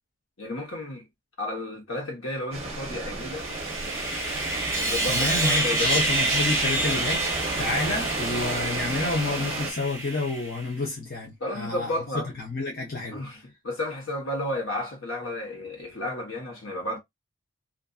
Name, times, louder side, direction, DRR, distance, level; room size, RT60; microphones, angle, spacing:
voice 1, 0.4-1.0 1.4-3.5 4.8-6.1 11.4-12.3 13.1-17.0, left 1 dB, 65° left, 1.1 m, -32 dB
sound 1, 2.5-9.7, right 3 dB, 30° right, 0.7 m, -33 dB
Sawing, 3.2-10.6, right 2 dB, 15° right, 1.0 m, -28 dB
voice 2, 5.1-13.2, left 2 dB, 45° left, 0.7 m, -29 dB
2.5 x 2.5 x 2.3 m
head